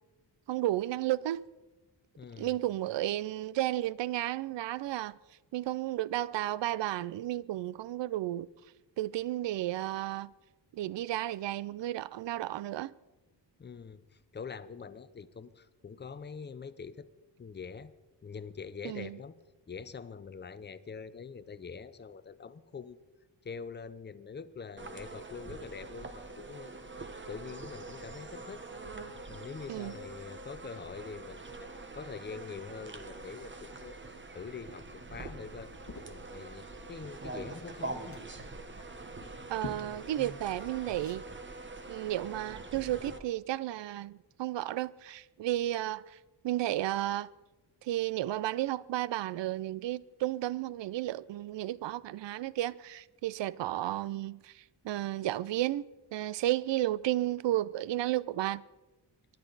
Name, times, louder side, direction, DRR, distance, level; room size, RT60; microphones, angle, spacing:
voice 1, 0.5-1.4 2.4-5.2 5.5-8.5 9.0-10.3 10.7-12.9 18.8-19.2 29.7-29.9 39.5-41.2 41.9-46.2 46.4-47.3 47.8-55.9 56.1-58.6, right 14 dB, 75° right, 0.5 m, -33 dB
voice 2, 2.2-2.6 13.6-17.1 17.4-17.9 18.2-19.4 19.7-23.0 23.4-26.7 27.3-28.7 29.3-31.7 32.0-35.7 36.1-38.2, left 5 dB, 25° left, 0.6 m, -44 dB
sound 1, 24.8-43.2, right 3 dB, 25° right, 1.1 m, -44 dB
Liquid, 34.7-41.5, left 4 dB, 40° left, 1.3 m, -51 dB
23.0 x 10.5 x 4.0 m
wide cardioid pair, 115°, 44 cm